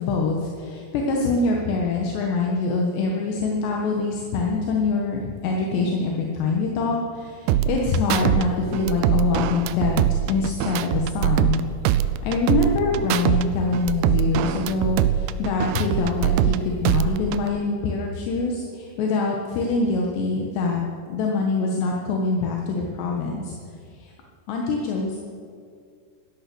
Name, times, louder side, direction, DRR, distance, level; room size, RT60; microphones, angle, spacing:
voice 1, 0.0-11.6 12.2-20.8 21.1-23.6 24.0-24.1 24.5-25.2, left 3 dB, 75° left, -1 dB, 3.5 m, -24 dB
sound 1, 7.5-8.4 8.7-11.6 11.9-13.4 13.7-16.6 16.9-17.5, right 12 dB, 85° right, 2.2 m, -22 dB
17.0 x 14.0 x 6.2 m, 2.2 s
omnidirectional pair, 5.0 m